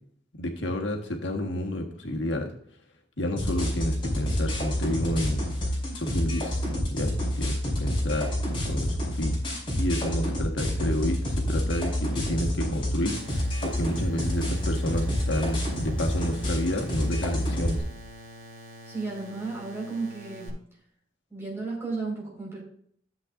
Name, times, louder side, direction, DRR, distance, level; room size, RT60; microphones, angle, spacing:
voice 1, 0.4-2.5 3.2-5.4 5.9-6.6 6.9-8.3 8.5-9.4 9.8-17.8, equal, 85° left, 2 dB, 1.7 m, -30 dB
sound 1, 3.4-17.8, equal, 30° left, 4.5 m, -28 dB
sound 2, 13.1-20.5, equal, 50° right, 4.5 m, -46 dB
voice 2, 18.9-20.6 21.3-22.6, right 3 dB, 15° right, -4 dB, 4.9 m, -34 dB
14.0 x 7.8 x 2.6 m, 0.62 s
head